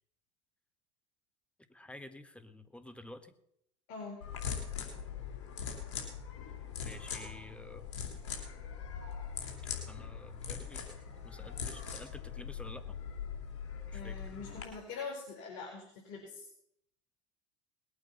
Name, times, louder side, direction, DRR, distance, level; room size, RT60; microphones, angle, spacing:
voice 1, 1.7-3.3 6.8-7.9 9.9-10.8 11.2-13.0 13.9-14.2, left 1 dB, 5° left, 10 dB, 1.7 m, -50 dB
voice 2, 3.9-4.2 13.9-16.5, left 4 dB, 60° left, -3 dB, 4.7 m, -44 dB
sound 1, 4.2-14.6, left 7 dB, 75° left, 3.4 m, -41 dB
20.5 x 8.8 x 5.6 m, 0.73 s
hypercardioid pair, 80°, 16 cm